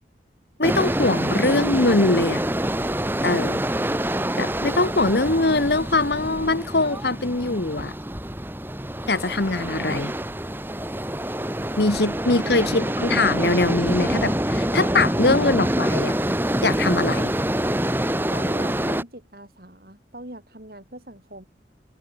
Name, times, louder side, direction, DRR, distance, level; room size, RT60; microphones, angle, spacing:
voice 1, 0.6-2.4 3.2-3.6 4.4-7.9 9.1-10.1 11.8-16.1 16.6-17.3, left 2 dB, 65° left, 1.4 m, -22 dB
sound 1, 0.6-19.0, right 1 dB, 10° right, 2.5 m, -26 dB
voice 2, 12.3-13.0 18.3-21.4, right 1 dB, 55° right, 4.9 m, -41 dB
head